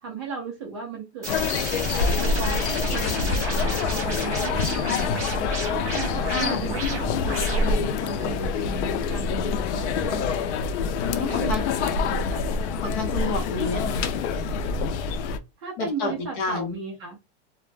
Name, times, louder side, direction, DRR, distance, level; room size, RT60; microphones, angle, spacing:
voice 1, 0.0-1.3 2.2-5.1 5.7-10.4 11.3-12.4 15.6-17.2, right 4 dB, 25° right, 0 dB, 0.4 m, -36 dB
sound 1, 1.2-8.0, right 2 dB, 10° right, 0.8 m, -33 dB
sound 2, 1.3-15.4, left 5 dB, 90° left, 0.5 m, -26 dB
voice 2, 6.3-6.7 11.0-11.6 12.8-14.0 15.8-16.7, left 3 dB, 45° left, 4 dB, 0.8 m, -29 dB
2.1 x 2.0 x 3.1 m, 0.24 s
supercardioid pair, 175°, 34 cm